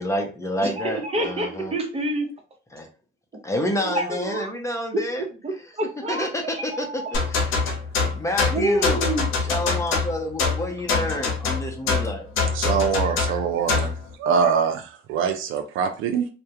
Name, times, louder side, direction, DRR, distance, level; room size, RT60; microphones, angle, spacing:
voice 1, 0.0-1.7 2.7-2.8 3.4-5.2 6.1-7.0 7.3-7.5 8.1-9.0 9.5-12.3, left 1 dB, 15° left, 0.6 m, -28 dB
voice 2, 0.6-2.3 3.8-4.5 4.9-7.2 8.5-9.3 13.0-13.4 13.8-13.9, right 1 dB, 30° right, 0.7 m, -28 dB
sound 1, 7.1-14.0, left 4 dB, 85° left, 0.6 m, -24 dB
voice 3, 12.5-13.9 14.2-16.3, right 6 dB, 85° right, 0.4 m, -23 dB
2.3 x 2.1 x 2.8 m
cardioid pair, 90°, 20 cm